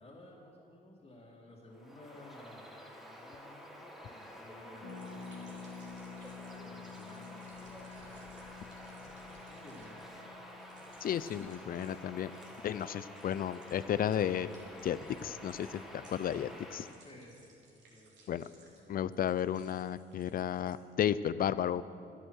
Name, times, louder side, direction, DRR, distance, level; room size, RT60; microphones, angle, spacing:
voice 1, 0.0-5.8 6.6-9.0 9.5-10.0 12.5-12.6 17.0-19.1, left 1 dB, 30° left, -6 dB, 2.3 m, -56 dB
Bird vocalization bird call bird song, 1.7-17.0, equal, ahead, 1.5 m, -50 dB
Harp, 4.8-14.4 14.7-14.8 14.9-15.3, left 5 dB, 70° left, 2.6 m, -51 dB
sound 1, 4.9-12.0 12.3-12.9 13.1-20.8, right 2 dB, 65° right, 2.9 m, -62 dB
voice 2, 11.0-12.3 12.6-14.5 14.8-16.9 18.3-18.5 18.9-21.8, left 9 dB, 50° left, 16 dB, 0.4 m, -33 dB
11.5 x 11.0 x 6.4 m, 2.5 s
cardioid pair, 90°, 20 cm